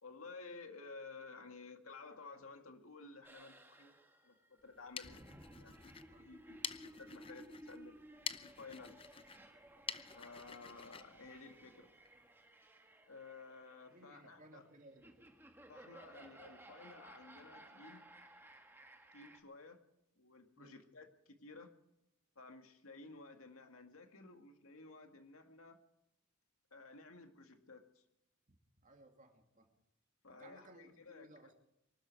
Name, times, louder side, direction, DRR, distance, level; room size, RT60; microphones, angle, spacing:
voice 1, 0.0-3.9 4.2-5.3 5.6-5.7 6.2-8.0 8.4-8.9 10.1-11.9 13.1-14.6 15.7-18.1 19.1-19.8 20.2-21.7 22.4-25.8 26.7-28.0 30.2-31.3, left 3 dB, 80° left, 6 dB, 2.1 m, -54 dB
sound 1, 3.2-19.4, right 1 dB, 10° right, 1.8 m, -58 dB
sound 2, 4.6-12.1, left 7 dB, 25° left, 0.6 m, -49 dB
voice 2, 13.9-15.3 20.6-20.8 28.8-29.7 30.3-31.5, right 1 dB, 40° right, 4 dB, 2.5 m, -61 dB
24.0 x 12.5 x 4.7 m, 0.84 s
head